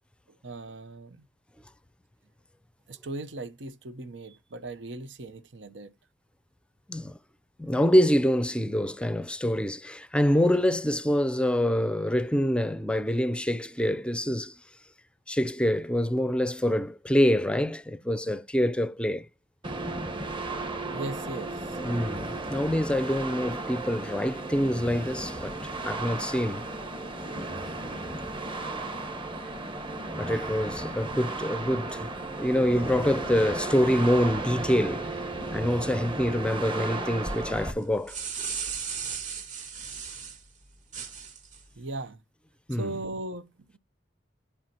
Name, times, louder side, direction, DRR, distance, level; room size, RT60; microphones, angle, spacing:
voice 1, 0.4-1.2 2.9-5.9 20.9-21.8 41.8-42.2 42.7-43.8, right 2 dB, 90° right, 0.9 m, -38 dB
voice 2, 7.6-14.5 15.3-19.2 21.8-25.6 25.8-26.7 30.2-32.1 32.4-35.1 35.5-38.2 42.7-42.9, equal, 5° left, 0.5 m, -26 dB
sound 1, 19.6-37.7, right 2 dB, 30° right, 1.4 m, -34 dB
sound 2, 37.8-40.4 40.9-41.6, right 6 dB, 45° right, 2.7 m, -36 dB
11.0 x 4.8 x 2.8 m
head